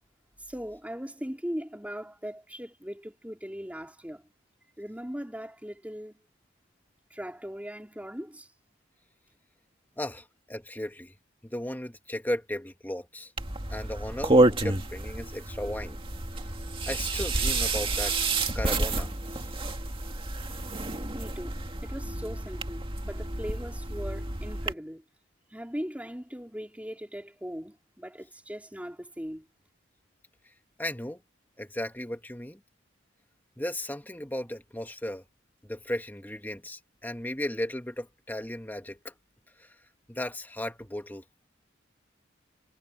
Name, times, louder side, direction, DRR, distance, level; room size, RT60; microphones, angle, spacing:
voice 1, 0.5-4.2 4.8-6.2 7.1-8.5 21.1-25.0 25.5-29.4, equal, 5° right, 3.3 m, -39 dB
voice 2, 10.0-11.1 11.4-13.3 13.7-16.0 16.9-18.2 18.5-19.1 19.4-19.5 30.8-31.2 31.6-32.6 33.6-35.2 35.6-39.1 39.6-39.7 40.1-41.2, left 1 dB, 10° left, 2.2 m, -35 dB
sound 1, 13.4-24.7, right 2 dB, 25° right, 2.4 m, -29 dB
head